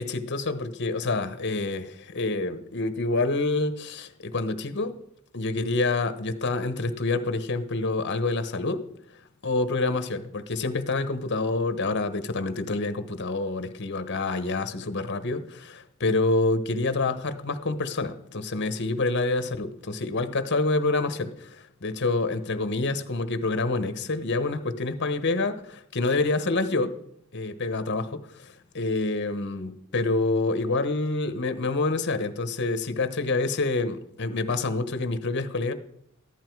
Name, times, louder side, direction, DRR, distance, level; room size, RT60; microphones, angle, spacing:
voice 1, 0.0-4.9 5.3-8.8 9.4-26.9 27.3-35.7, left 3 dB, 55° left, 10 dB, 1.1 m, -27 dB
14.5 x 11.5 x 4.7 m, 0.73 s
head